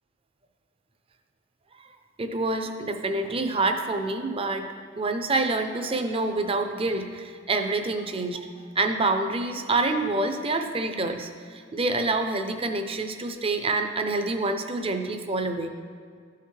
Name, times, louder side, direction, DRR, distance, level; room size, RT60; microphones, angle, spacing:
voice 1, 2.2-4.7 5.0-8.5 8.8-15.7, right 2 dB, 30° right, 6 dB, 0.6 m, -27 dB
13.5 x 5.7 x 3.2 m, 2.1 s
head